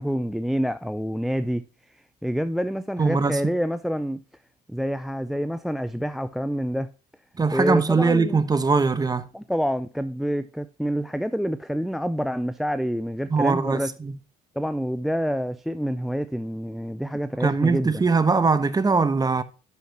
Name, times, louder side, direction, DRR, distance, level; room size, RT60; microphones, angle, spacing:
voice 1, 0.0-1.7 2.2-4.2 4.7-6.9 7.5-8.4 9.3-13.9 14.6-18.0, equal, ahead, 0.4 m, -27 dB
voice 2, 3.0-3.4 7.4-9.3 13.3-14.2 17.4-19.4, right 4 dB, 20° right, 1.0 m, -21 dB
11.5 x 5.7 x 2.9 m
hypercardioid pair, 70°, 19 cm